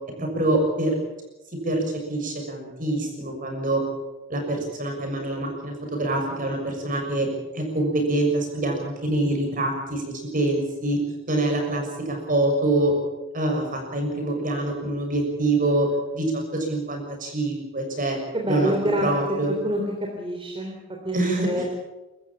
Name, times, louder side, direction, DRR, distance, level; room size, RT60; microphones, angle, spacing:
voice 1, 0.2-0.9 1.5-3.9 4.3-7.3 7.5-11.0 11.3-12.9 13.3-15.9 16.1-18.2 18.5-19.5 21.1-21.7, right 2 dB, 45° right, 3 dB, 6.7 m, -25 dB
voice 2, 18.3-19.1 19.5-20.8 21.0-21.7, equal, 25° right, 1 dB, 3.2 m, -27 dB
23.5 x 14.5 x 8.8 m, 1.0 s
head